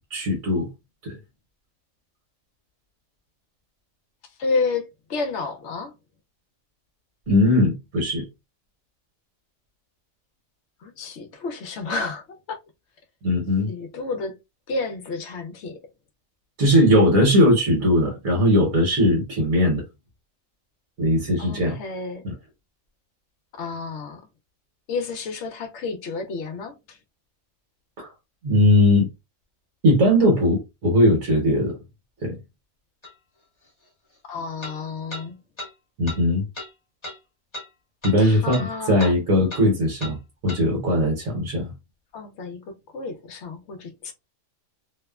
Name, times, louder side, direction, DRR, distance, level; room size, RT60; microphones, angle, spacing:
voice 1, 0.1-0.7 1.0-1.2 7.3-8.2 13.2-13.7 16.6-19.8 21.0-21.8 28.0-28.1 28.4-29.1 29.8-31.8 32.2-32.4 36.0-36.4 38.0-40.2 40.4-41.7, left 1 dB, 75° right, 1.3 m, -19 dB
voice 2, 4.4-5.9 10.8-12.6 13.7-14.4 14.7-15.8 21.4-22.2 23.5-24.2 24.9-27.0 34.3-35.4 38.2-39.1 42.1-44.1, left 4 dB, 65° left, 0.8 m, -30 dB
sound 1, 33.0-33.1 34.6-34.8 35.1-35.2 35.6-35.7 36.1-36.2 36.5-36.7 37.0-37.2 37.5-37.7 38.0-38.2 38.5-38.7 39.0-39.1 39.5-39.6 40.0-40.1 40.5-40.6, left 1 dB, 25° left, 0.7 m, -35 dB
2.8 x 2.0 x 2.3 m
omnidirectional pair, 1.4 m